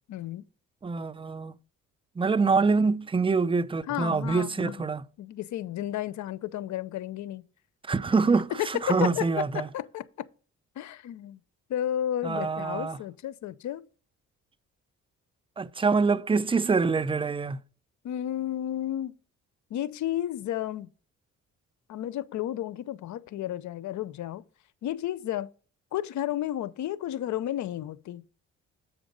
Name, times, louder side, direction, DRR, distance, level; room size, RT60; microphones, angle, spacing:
voice 1, 0.1-0.4 3.9-4.7 5.2-7.4 8.6-10.0 10.8-11.4 11.7-13.8 18.0-19.1 19.7-20.9 21.9-24.4 24.8-25.5 25.9-28.2, left 12 dB, 70° left, 0.7 m, -32 dB
voice 2, 0.8-1.5 2.2-5.0 7.9-9.7 12.2-13.0 15.6-17.6, right 4 dB, 15° right, 0.5 m, -25 dB
7.9 x 5.1 x 5.1 m
cardioid pair, 90°, 30 cm